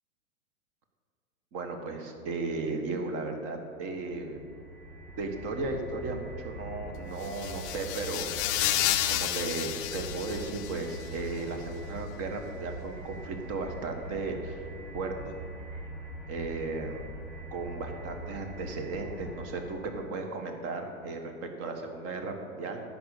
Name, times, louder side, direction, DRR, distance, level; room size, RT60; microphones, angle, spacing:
voice 1, 1.5-4.4 5.2-8.3 9.1-14.6 14.9-15.4 16.3-17.0 17.5-22.8, right 3 dB, 35° right, 4 dB, 1.5 m, -35 dB
sound 1, 4.0-20.2, right 1 dB, 5° left, 1.3 m, -42 dB
sound 2, 7.2-11.1, left 13 dB, 50° left, 0.7 m, -31 dB
11.0 x 5.5 x 8.4 m, 2.4 s
hypercardioid pair, 130°, 44 cm